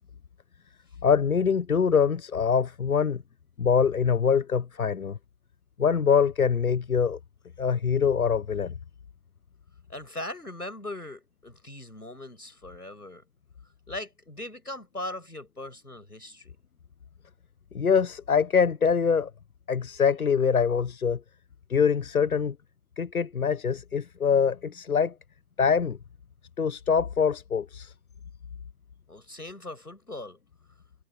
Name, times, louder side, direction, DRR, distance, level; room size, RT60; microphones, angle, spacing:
voice 1, 1.0-3.2 3.6-5.2 5.8-7.2 7.6-8.7 17.7-19.3 19.7-21.2 21.7-22.6 23.0-25.1 25.6-26.0 26.6-27.9, left 6 dB, 70° left, 0.9 m, -24 dB
voice 2, 9.9-13.2 13.9-16.6 29.1-30.4, left 1 dB, 85° left, 7.5 m, -39 dB
figure-of-eight pair, 140°, 45 cm